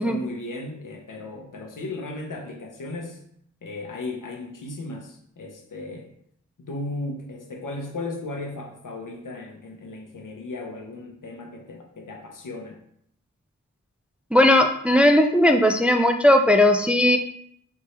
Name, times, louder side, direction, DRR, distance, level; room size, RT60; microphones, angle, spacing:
voice 1, 0.0-3.2 3.6-6.1 6.6-12.8, left 2 dB, 80° left, 1 dB, 0.9 m, -35 dB
voice 2, 14.3-17.2, left 1 dB, 5° right, 5 dB, 0.3 m, -17 dB
4.3 x 3.5 x 3.2 m, 0.70 s
wide cardioid pair, 65°, 31 cm